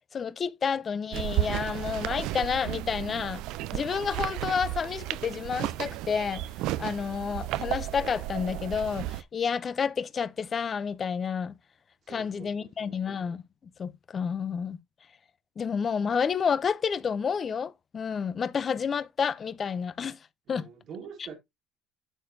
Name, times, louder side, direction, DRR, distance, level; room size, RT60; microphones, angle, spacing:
voice 1, 0.1-3.4 3.7-6.4 6.8-11.5 12.1-13.4 13.8-14.8 15.6-20.2 20.5-20.7, left 6 dB, 40° left, 0.6 m, -30 dB
sound 1, 1.1-9.2, right 15 dB, 75° right, 0.4 m, -33 dB
voice 2, 12.0-13.0 20.5-21.3, right 6 dB, 55° right, 1.9 m, -46 dB
9.1 x 6.8 x 2.7 m
supercardioid pair, 95°, 0 cm